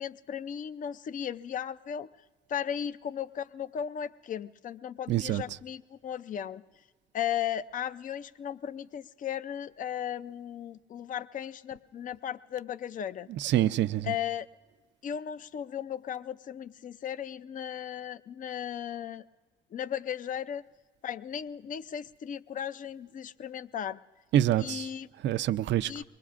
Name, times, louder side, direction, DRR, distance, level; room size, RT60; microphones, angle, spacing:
voice 1, 0.0-2.1 2.5-6.6 7.1-13.3 14.0-14.5 15.0-19.2 19.7-20.7 21.0-24.0 24.6-25.1 25.9-26.0, left 9 dB, 40° left, 0.4 m, -36 dB
voice 2, 5.1-5.4 13.3-14.2 24.3-24.9 25.2-25.9, right 12 dB, 65° right, 0.4 m, -26 dB
23.5 x 21.0 x 2.5 m
cardioid pair, 90°, 20 cm